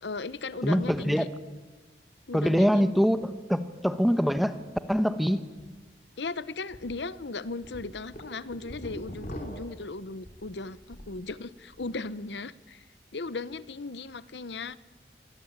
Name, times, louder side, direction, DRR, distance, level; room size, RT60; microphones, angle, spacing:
voice 1, 0.0-1.3 2.3-2.9 6.2-12.8 13.1-14.8, left 3 dB, 85° left, 18 dB, 0.9 m, -37 dB
voice 2, 0.6-1.3 2.3-4.6 4.9-5.5, equal, ahead, 11 dB, 1.1 m, -24 dB
sound 1, 5.6-5.7 6.0-6.1 6.7-6.9 7.4-11.2 11.5-12.0, equal, 45° left, 4.4 m, -42 dB
26.0 x 20.0 x 8.9 m, 1.2 s
head